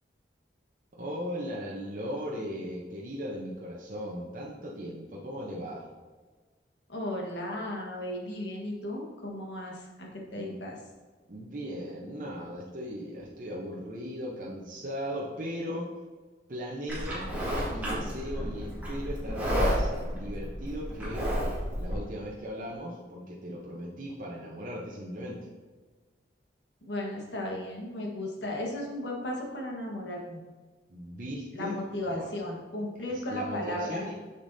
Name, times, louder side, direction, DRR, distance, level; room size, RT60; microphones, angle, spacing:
voice 1, 0.9-5.9 10.3-10.6 11.3-15.9 16.5-17.3 17.7-21.3 21.7-25.5 30.9-32.3 33.0-34.2, equal, 45° right, -4 dB, 0.8 m, -38 dB
voice 2, 6.9-10.8 26.8-30.4 31.5-34.0, left 1 dB, 75° left, -1 dB, 1.4 m, -35 dB
Livestock farm animals working animals, 16.9-21.9, equal, 10° right, 1.8 m, -31 dB
6.7 x 6.7 x 2.7 m, 1.4 s
head